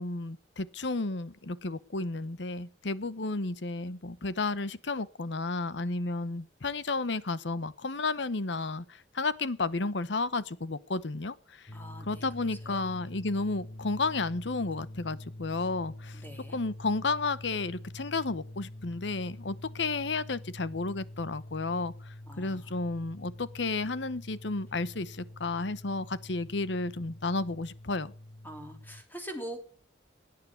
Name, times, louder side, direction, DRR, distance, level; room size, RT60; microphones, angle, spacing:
voice 1, 0.0-11.7 12.0-16.2 16.5-28.1, left 3 dB, 70° left, 0.9 m, -32 dB
sound 1, 11.7-29.0, left 1 dB, 35° left, 0.9 m, -46 dB
voice 2, 11.7-12.3 12.7-12.8 16.2-16.6 22.3-22.7 28.4-29.6, right 1 dB, 10° left, 3.1 m, -43 dB
17.0 x 9.7 x 7.0 m
head